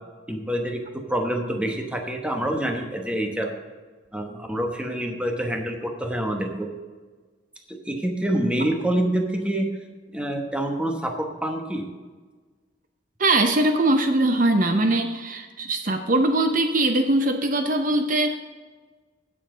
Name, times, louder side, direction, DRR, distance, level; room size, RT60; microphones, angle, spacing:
voice 1, 0.3-3.5 4.1-6.7 7.7-9.7 10.1-11.9, right 1 dB, 5° right, 2 dB, 1.1 m, -26 dB
voice 2, 13.2-18.4, right 2 dB, 50° right, 6 dB, 0.7 m, -21 dB
16.0 x 7.0 x 3.8 m, 1.4 s
head